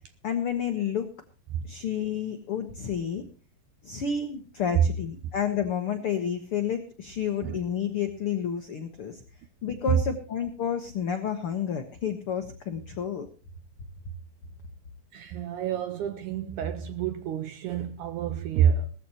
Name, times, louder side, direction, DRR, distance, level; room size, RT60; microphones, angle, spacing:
voice 1, 0.2-1.1 1.6-3.3 3.8-9.2 9.6-13.3, left 7 dB, 85° left, 1.2 m, -30 dB
voice 2, 15.1-18.9, right 8 dB, 80° right, 1.8 m, -28 dB
18.5 x 14.5 x 3.0 m
omnidirectional pair, 4.4 m